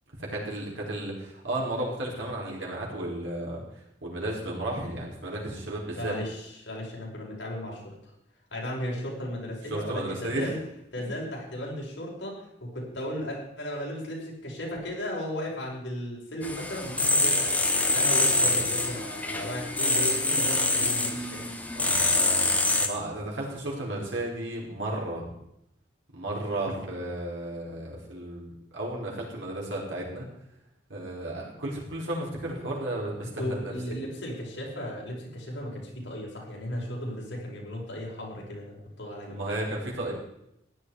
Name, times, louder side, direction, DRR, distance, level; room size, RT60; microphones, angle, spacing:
voice 1, 0.2-3.6 4.0-6.1 9.7-10.5 18.3-18.5 21.8-22.5 22.8-25.3 26.1-30.2 30.9-33.6 39.3-40.1, right 1 dB, 85° right, -3 dB, 5.1 m, -33 dB
voice 2, 5.9-7.9 8.5-10.6 10.9-17.6 17.9-21.4 33.2-39.4, equal, 70° left, -3 dB, 5.4 m, -35 dB
sound 1, 16.4-22.9, left 2 dB, 10° left, 1.2 m, -25 dB
15.5 x 11.0 x 4.9 m, 0.80 s
head